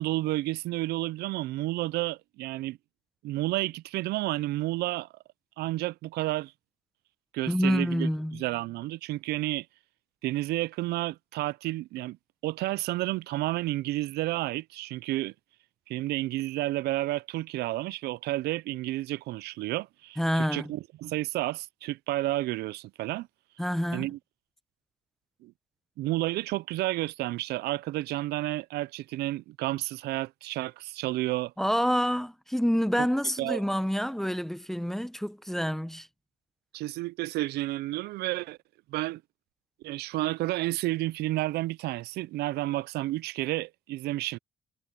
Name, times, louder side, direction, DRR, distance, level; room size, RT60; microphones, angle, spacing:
voice 1, 0.0-2.8 3.2-5.1 5.6-6.5 7.3-9.7 10.2-12.2 12.4-15.3 15.9-23.3 23.9-24.2 25.4-25.5 26.0-31.5 33.0-33.1 33.4-33.6 36.7-38.6 38.9-39.2 39.8-44.4, right 17 dB, 75° right, 0.4 m, -31 dB
voice 2, 7.5-8.4 20.2-20.7 23.6-24.1 31.6-36.1, equal, ahead, 1.0 m, -27 dB
cardioid pair, 110°, 17 cm